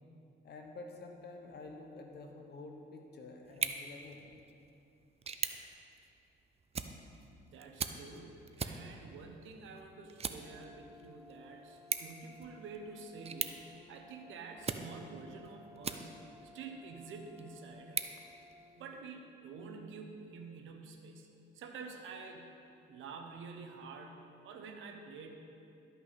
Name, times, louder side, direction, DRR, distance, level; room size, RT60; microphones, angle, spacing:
voice 1, 0.4-4.3, left 3 dB, 55° left, 2 dB, 1.2 m, -49 dB
sound 1, 3.4-16.4 16.9-19.0, right 6 dB, 30° right, 0.5 m, -43 dB
voice 2, 7.4-13.6 13.9-18.2 18.8-21.3 21.5-22.5 22.9-25.3, right 4 dB, 80° right, 4 dB, 1.0 m, -49 dB
Brass instrument, 10.3-18.8, left 1 dB, 10° right, 0.9 m, -58 dB
12.0 x 5.7 x 4.2 m, 2.6 s
cardioid pair, 90°, 20 cm